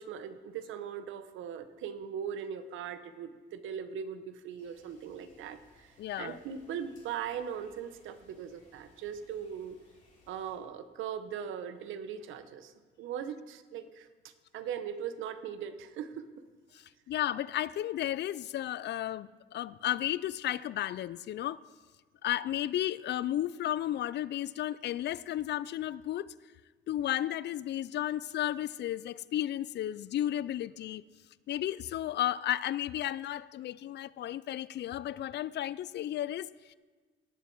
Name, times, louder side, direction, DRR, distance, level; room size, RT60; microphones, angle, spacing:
voice 1, 0.0-9.8 10.3-12.7 13.0-16.3, right 8 dB, 85° right, 11 dB, 0.8 m, -40 dB
sound 1, 4.6-10.6, left 2 dB, 40° left, 3.5 m, -64 dB
voice 2, 6.0-6.4 16.7-21.6 22.2-26.3 26.9-31.0 31.5-36.7, left 12 dB, 60° left, 19 dB, 0.4 m, -33 dB
17.5 x 7.0 x 4.5 m, 1.4 s
cardioid pair, 90°, 20 cm